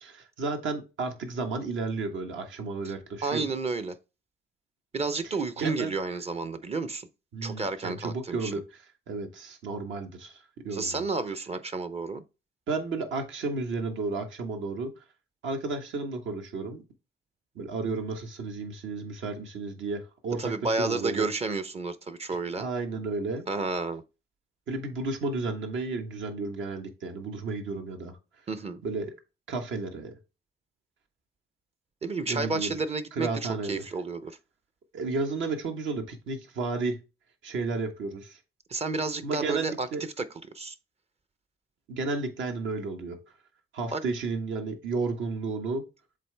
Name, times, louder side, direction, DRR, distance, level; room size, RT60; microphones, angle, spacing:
voice 1, 0.0-3.5 5.6-5.9 7.3-11.0 12.7-14.9 15.4-16.8 17.5-21.3 22.5-23.4 24.7-28.2 28.8-29.1 29.5-30.2 32.3-32.8 33.1-33.8 34.9-37.0 37.4-38.4 39.2-40.1 41.9-43.2 43.7-45.8, right 3 dB, 75° right, 1.5 m, -32 dB
voice 2, 3.2-4.0 4.9-7.1 7.4-8.5 10.7-12.2 20.4-22.7 23.5-24.0 28.5-28.8 32.0-34.4 38.7-39.9 40.2-40.3 40.5-40.8 43.9-44.0, right 3 dB, 30° right, 0.6 m, -31 dB
7.5 x 3.8 x 3.3 m
cardioid pair, 90°, 20 cm